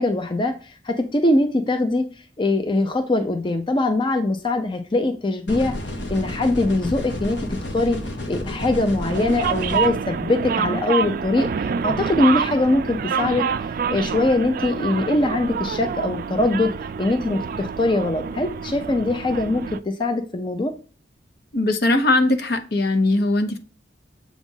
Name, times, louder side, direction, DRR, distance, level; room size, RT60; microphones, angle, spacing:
voice 1, 0.0-2.0 2.4-5.7 6.1-8.0 8.3-11.5 11.8-13.5 13.9-16.7 17.0-20.7, left 2 dB, 30° left, 6 dB, 0.5 m, -22 dB
sound 1, 5.5-9.9, left 1 dB, 90° left, 1.1 m, -31 dB
sound 2, 9.1-19.8, right 6 dB, 55° right, 0.3 m, -27 dB
voice 2, 21.5-23.6, left 2 dB, 60° left, 7 dB, 0.8 m, -20 dB
7.1 x 2.4 x 5.4 m, 0.38 s
head